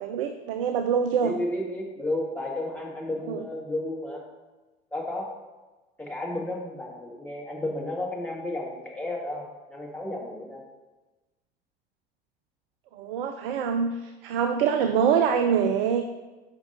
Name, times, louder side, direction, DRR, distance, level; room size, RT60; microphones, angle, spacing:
voice 1, 0.0-1.3 3.3-3.4 12.9-16.2, right 7 dB, 65° right, 8 dB, 0.5 m, -25 dB
voice 2, 1.2-4.2 4.9-5.3 6.0-10.6, left 1 dB, 5° left, -3 dB, 1.6 m, -32 dB
5.8 x 5.3 x 3.9 m, 1.2 s
figure-of-eight pair, 65°, 31 cm